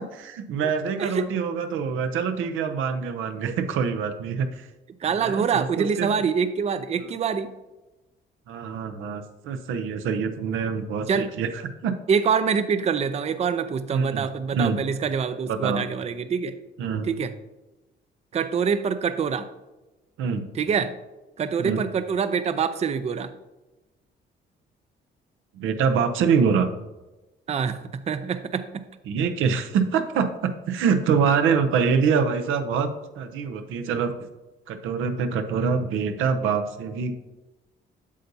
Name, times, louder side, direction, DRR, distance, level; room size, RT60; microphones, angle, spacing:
voice 1, 0.0-4.7 5.1-6.1 8.5-11.5 11.8-12.0 13.9-14.8 15.5-15.9 16.8-17.1 20.2-20.5 21.6-21.8 25.6-26.7 29.1-32.9 33.2-34.1 34.7-37.1, right 6 dB, 85° right, 8 dB, 0.7 m, -25 dB
voice 2, 5.0-7.5 11.1-11.3 12.1-16.6 17.0-17.3 18.3-19.5 20.5-20.9 21.4-23.3 27.5-28.9, right 6 dB, 35° right, 11 dB, 0.4 m, -25 dB
8.4 x 6.6 x 2.7 m, 1.1 s
cardioid pair, 90°, 20 cm